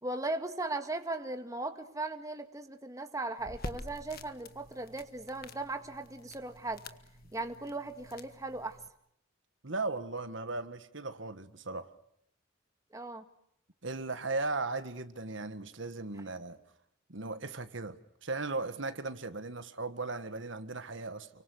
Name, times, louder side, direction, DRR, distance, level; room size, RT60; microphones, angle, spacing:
voice 1, 0.0-6.8 7.3-8.8 12.9-13.3, right 2 dB, 15° right, 1.9 m, -38 dB
sound 1, 3.4-8.9, left 2 dB, 50° left, 1.6 m, -48 dB
voice 2, 9.6-11.9 13.8-16.6 17.1-21.3, right 3 dB, 65° right, 1.7 m, -37 dB
30.0 x 24.5 x 6.5 m
head